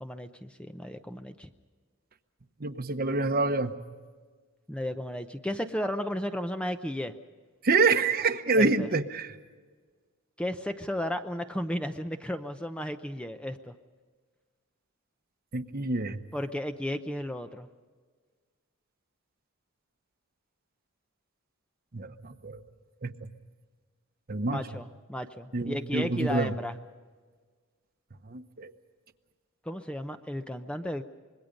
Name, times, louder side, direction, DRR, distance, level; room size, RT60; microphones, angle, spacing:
voice 1, 0.0-1.5 4.7-7.1 8.6-8.9 10.4-13.7 16.3-17.7 24.5-26.8 29.6-31.0, left 1 dB, 5° left, 7 dB, 0.7 m, -34 dB
voice 2, 2.6-3.8 7.6-9.3 15.5-16.2 21.9-22.6 23.0-23.1 24.3-24.6 25.5-26.5 28.3-28.7, right 3 dB, 45° right, 9 dB, 1.0 m, -27 dB
25.5 x 21.5 x 5.3 m, 1.5 s
head